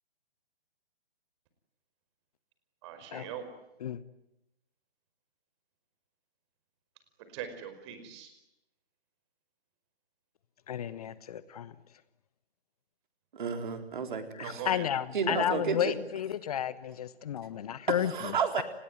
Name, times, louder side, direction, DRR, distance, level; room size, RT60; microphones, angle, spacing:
voice 1, 2.8-3.5 7.3-8.3 14.4-14.8, right 9 dB, 30° right, 5.1 m, -41 dB
voice 2, 10.7-11.7 14.4-18.6, left 10 dB, 40° left, 1.2 m, -32 dB
voice 3, 13.3-14.7 15.1-16.0 17.9-18.6, right 6 dB, 50° right, 4.1 m, -32 dB
29.5 x 20.5 x 9.5 m
figure-of-eight pair, 135°, 31 cm